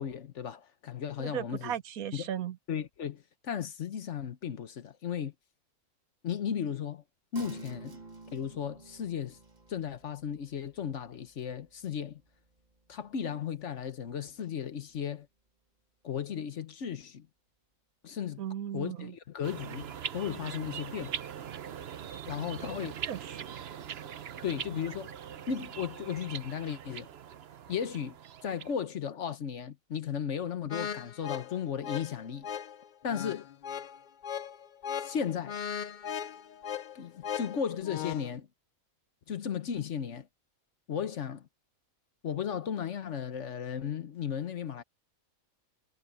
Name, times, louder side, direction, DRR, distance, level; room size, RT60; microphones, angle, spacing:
voice 1, 0.0-1.7 2.1-2.2 2.7-5.3 6.2-7.0 7.3-8.0 8.3-9.4 9.7-12.2 12.9-15.3 16.0-17.3 18.0-18.4 18.7-21.2 22.3-23.0 24.4-25.1 25.5-27.1 27.7-28.2 28.4-32.5 33.0-33.5 35.0-35.6 36.9-38.5 39.3-40.3 40.9-41.4 42.2-44.8, left 8 dB, 60° left, 1.3 m, -35 dB
voice 2, 1.2-2.6 18.4-19.1 23.1-23.5, right 9 dB, 85° right, 1.3 m, -36 dB
sound 1, 7.4-14.4 14.7-14.8, right 3 dB, 30° right, 1.7 m, -52 dB
sound 2, 19.4-28.7, right 9 dB, 55° right, 0.9 m, -41 dB
sound 3, 30.7-38.3, left 8 dB, 85° left, 0.4 m, -38 dB
omnidirectional pair, 1.5 m